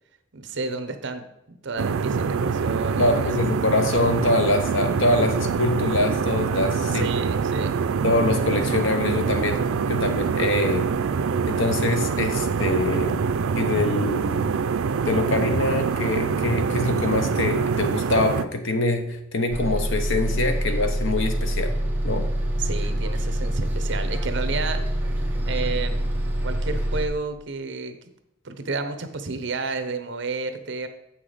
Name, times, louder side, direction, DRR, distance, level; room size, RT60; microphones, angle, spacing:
voice 1, 0.3-3.3 6.9-7.7 22.6-24.8 25.5-26.0 26.4-28.0 28.4-30.9, right 3 dB, 60° right, 9 dB, 0.9 m, -31 dB
sound 1, 1.8-18.4, right 5 dB, 90° right, 0.4 m, -25 dB
voice 2, 3.0-7.1 8.0-9.6 9.9-10.9 11.5-13.2 13.6-14.6 15.0-21.7 22.0-22.3, left 2 dB, 65° left, 7 dB, 1.0 m, -24 dB
Bus, 19.5-27.1, right 1 dB, 10° right, 1.1 m, -25 dB
7.9 x 5.9 x 4.9 m, 0.85 s
head